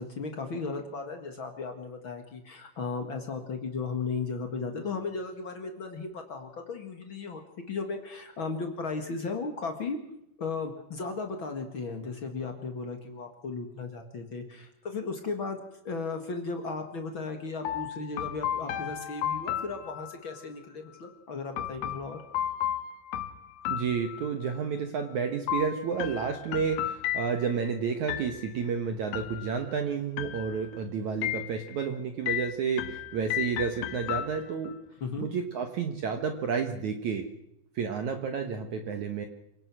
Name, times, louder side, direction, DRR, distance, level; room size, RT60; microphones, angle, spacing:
voice 1, 0.0-7.4 7.7-10.0 10.4-22.2 35.0-35.3, left 4 dB, 55° left, 4 dB, 1.3 m, -35 dB
sound 1, 17.7-20.4 21.6-24.6 25.5-27.7 28.1-28.7 29.1-29.8 30.2-30.8 31.2-31.9 32.3-34.7, left 11 dB, 85° left, 3.6 m, -34 dB
voice 2, 23.7-34.7 35.2-37.3 37.8-39.3, right 6 dB, 75° right, 6 dB, 1.7 m, -31 dB
27.5 x 17.5 x 6.2 m, 0.79 s
omnidirectional pair, 5.3 m